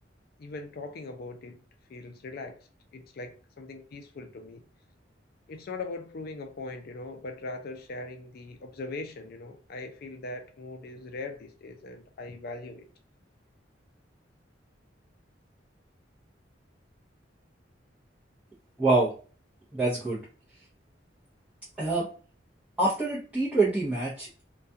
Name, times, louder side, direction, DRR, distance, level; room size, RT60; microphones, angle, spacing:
voice 1, 0.4-1.6 1.9-4.6 5.5-12.9, left 3 dB, 55° left, 0.4 m, -40 dB
voice 2, 18.8-19.1 19.7-20.2 21.8-22.1 22.8-24.4, right 2 dB, 5° right, 0.6 m, -25 dB
2.3 x 2.2 x 2.6 m
head